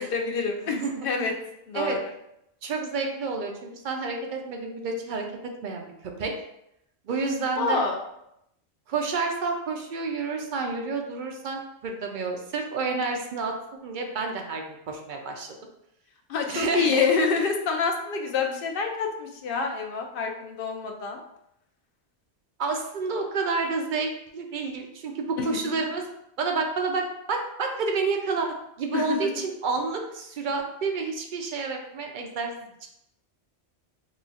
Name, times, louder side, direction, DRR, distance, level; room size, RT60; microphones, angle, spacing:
voice 1, 0.0-1.3 1.7-2.1 7.6-8.0 16.3-21.2 25.4-25.5 28.9-29.4, left 5 dB, 60° left, 2 dB, 0.7 m, -27 dB
voice 2, 0.8-1.1 1.7-2.0 2.6-5.2 5.6-6.3 7.1-7.9 8.9-15.5 16.5-17.0 22.6-26.0 26.4-28.5 28.8-32.5, right 4 dB, 55° right, 2 dB, 0.6 m, -29 dB
3.0 x 2.3 x 3.9 m, 0.80 s
omnidirectional pair, 1.1 m